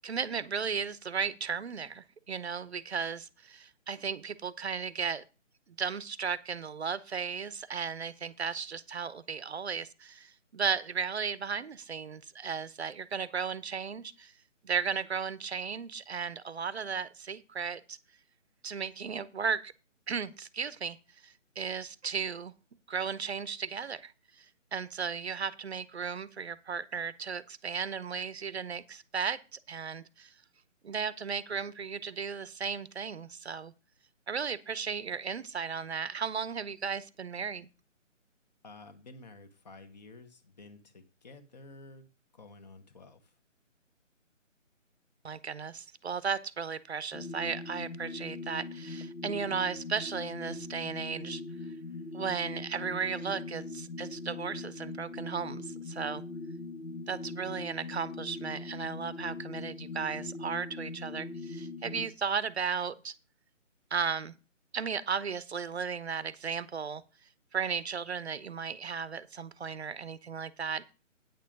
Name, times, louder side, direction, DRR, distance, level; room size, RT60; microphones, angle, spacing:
voice 1, 0.0-5.2 5.7-14.3 14.6-18.0 18.6-19.7 20.1-21.0 21.2-22.5 22.9-24.5 24.7-30.3 30.8-33.7 34.3-37.7 45.2-51.4 52.1-56.2 57.1-63.1 63.9-64.3 64.7-67.0 67.5-70.8, right 6 dB, 55° right, 17 dB, 0.8 m, -35 dB
voice 2, 38.6-42.1 42.3-43.2, left 3 dB, 35° left, 9 dB, 1.3 m, -51 dB
sound 1, 47.1-62.1, left 3 dB, 80° left, 1.7 m, -41 dB
9.3 x 7.0 x 5.2 m, 0.32 s
figure-of-eight pair, 155°, 38 cm